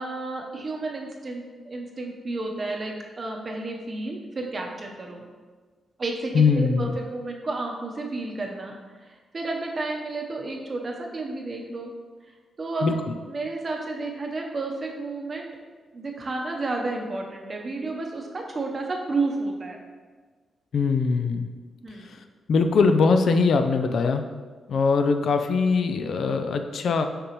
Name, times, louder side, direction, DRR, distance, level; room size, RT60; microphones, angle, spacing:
voice 1, 0.0-5.3 6.0-8.8 9.0-11.9 12.6-15.5 15.9-19.8 21.8-22.1, right 3 dB, 35° right, 1 dB, 0.8 m, -31 dB
voice 2, 6.3-7.0 12.8-13.0 20.7-21.5 22.5-24.2 24.7-27.0, left 4 dB, 65° left, 7 dB, 0.4 m, -21 dB
6.7 x 5.3 x 3.0 m, 1.4 s
wide cardioid pair, 130°, 0 cm